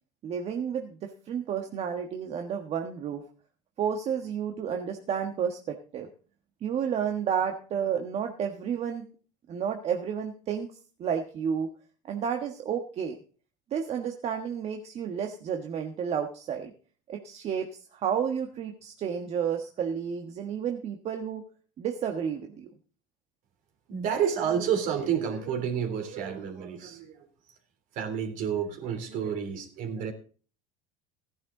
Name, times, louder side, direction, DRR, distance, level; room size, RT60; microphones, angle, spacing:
voice 1, 0.2-3.2 3.8-6.1 6.6-9.1 9.5-10.7 11.0-11.7 12.0-13.2 13.7-16.7 17.1-21.4 21.8-22.7, right 7 dB, 45° right, 4 dB, 1.4 m, -31 dB
voice 2, 23.9-27.3 28.0-30.1, right 8 dB, 60° right, 6 dB, 3.3 m, -30 dB
15.0 x 10.5 x 3.8 m, 0.40 s
supercardioid pair, 105°, 15 cm